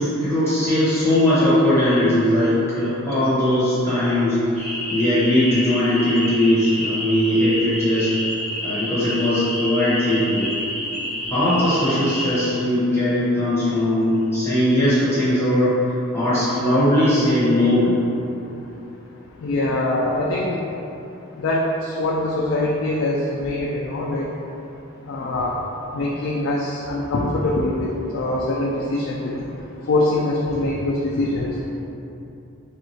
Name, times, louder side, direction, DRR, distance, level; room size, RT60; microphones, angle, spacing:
voice 1, 0.0-4.6 4.9-8.1 8.6-10.5 11.3-18.0, left 1 dB, 10° left, -12 dB, 0.8 m, -19 dB
sound 1, 4.5-12.5, equal, 25° right, 0.9 m, -29 dB
voice 2, 19.4-20.6 21.4-24.3 25.1-25.6 25.9-29.4 29.9-31.5, left 2 dB, 65° left, -3 dB, 0.4 m, -23 dB
3.4 x 2.7 x 4.3 m, 2.8 s
head